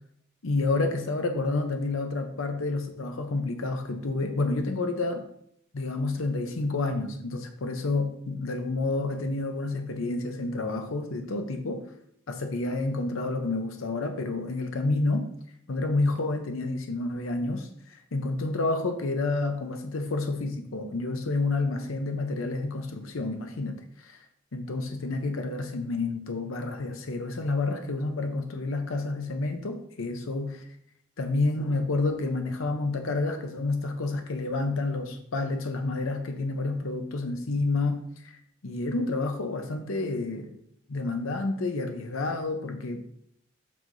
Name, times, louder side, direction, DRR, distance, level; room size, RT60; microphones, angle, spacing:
voice 1, 0.4-5.3 5.7-11.9 12.3-15.3 15.7-24.3 24.5-30.7 31.2-40.6 40.9-43.0, left 2 dB, 80° left, 5 dB, 0.7 m, -29 dB
7.6 x 5.6 x 2.6 m, 0.71 s
head